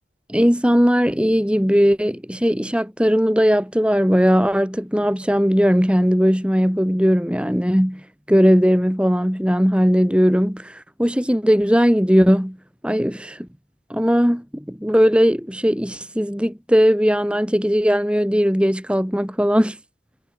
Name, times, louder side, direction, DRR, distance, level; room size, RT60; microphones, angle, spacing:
voice 1, 0.3-8.0 8.3-10.7 11.0-12.6 12.8-13.5 13.9-19.8, equal, 5° right, 2.5 m, -18 dB
head